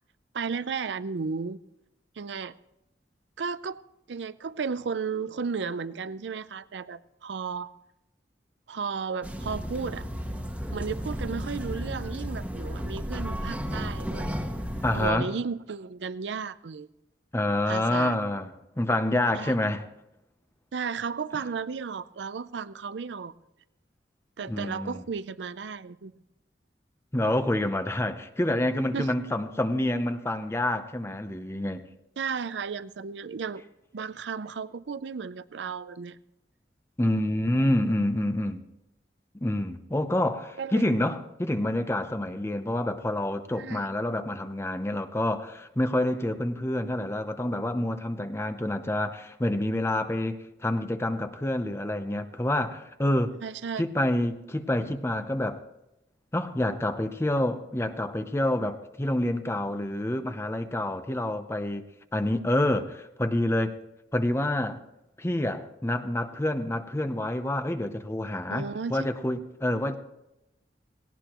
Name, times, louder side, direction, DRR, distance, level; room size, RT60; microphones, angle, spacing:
voice 1, 0.3-1.6 2.2-2.6 3.4-3.8 4.1-7.7 8.7-10.1 10.7-14.3 14.9-16.9 17.7-18.1 19.3-19.5 20.7-23.3 24.4-26.1 28.9-29.1 32.2-33.6 33.9-36.2 40.6-40.8 43.6-43.9 53.4-53.8 68.5-69.1, right 5 dB, 85° right, 0.5 m, -34 dB
sound 1, 9.2-15.1, equal, 10° right, 1.3 m, -33 dB
voice 2, 14.8-15.3 17.3-19.8 24.5-25.0 27.1-31.9 37.0-38.6 39.4-53.4 53.8-55.6 56.3-61.8 62.1-63.8 64.1-64.8 65.2-70.0, left 1 dB, 15° left, 0.7 m, -27 dB
18.0 x 18.0 x 3.0 m
head